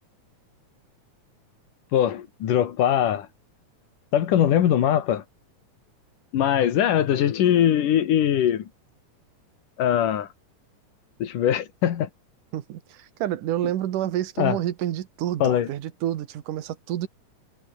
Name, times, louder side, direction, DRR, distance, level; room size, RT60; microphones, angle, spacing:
voice 1, 1.9-3.3 4.1-5.2 6.3-8.7 9.8-10.3 11.2-12.1 14.4-14.6 15.4-15.7, left 10 dB, 90° left, 3.4 m, -21 dB
voice 2, 12.5-17.1, right 12 dB, 80° right, 3.0 m, -29 dB
omnidirectional pair, 3.6 m